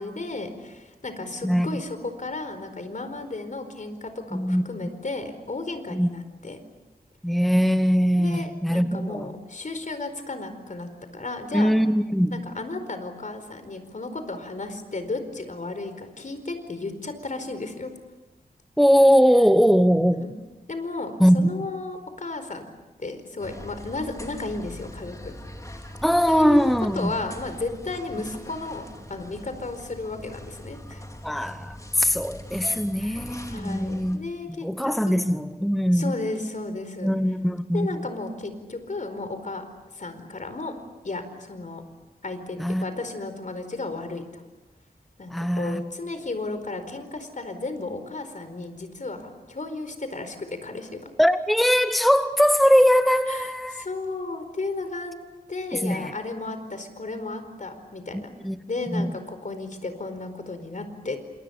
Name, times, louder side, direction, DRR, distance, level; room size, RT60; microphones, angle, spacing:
voice 1, 0.0-6.6 8.2-11.7 12.3-17.9 20.2-20.4 20.7-22.6 23.0-25.3 26.3-31.0 33.0-35.2 35.9-37.1 37.7-39.6 39.9-40.7 41.0-41.8 42.2-44.4 45.2-51.0 53.2-55.1 55.5-58.3 58.7-61.2, left 3 dB, 55° left, 9 dB, 4.6 m, -34 dB
voice 2, 1.4-1.8 4.3-4.7 5.9-6.1 7.2-9.2 11.5-12.4 18.8-20.2 21.2-21.5 26.0-27.1 31.2-34.2 34.6-36.1 37.0-38.0 42.6-42.8 45.3-45.8 51.2-53.9 55.7-56.1 58.1-58.6 58.9-59.1, equal, ahead, 10 dB, 1.0 m, -21 dB
sound 1, 23.4-34.2, left 1 dB, 20° left, 4.2 m, -41 dB
29.0 x 27.5 x 7.2 m, 1.1 s
wide cardioid pair, 80°, 16 cm